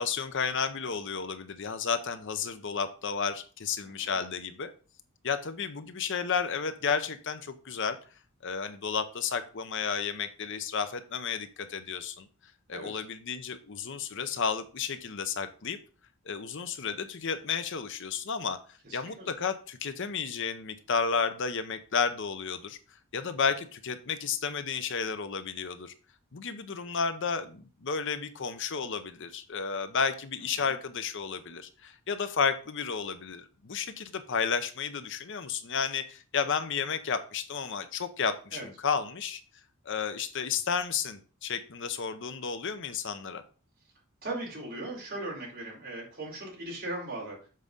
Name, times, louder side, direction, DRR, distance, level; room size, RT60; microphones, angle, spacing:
voice 1, 0.0-4.7 5.2-8.0 8.4-12.3 12.7-15.8 16.3-18.6 18.9-22.8 23.1-25.9 26.3-39.4 39.9-43.4, left 6 dB, 55° left, 10 dB, 0.7 m, -32 dB
voice 2, 3.8-4.2 12.7-13.0 18.8-19.3 30.5-30.7 38.5-38.7 44.2-47.5, right 2 dB, 45° right, -4 dB, 4.4 m, -39 dB
7.5 x 4.8 x 5.3 m, 0.38 s
head